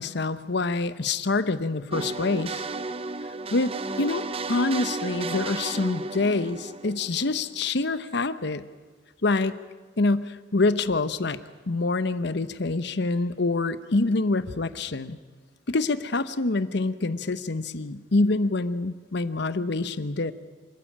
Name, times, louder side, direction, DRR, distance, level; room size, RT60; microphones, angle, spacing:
voice 1, 0.0-2.7 3.5-8.6 9.2-9.5 10.0-11.4 11.7-15.2 15.7-20.3, left 3 dB, 65° left, 13 dB, 0.9 m, -26 dB
sound 1, 1.9-7.7, right 3 dB, 30° right, 0.7 m, -33 dB
27.0 x 13.0 x 8.6 m, 1.4 s
head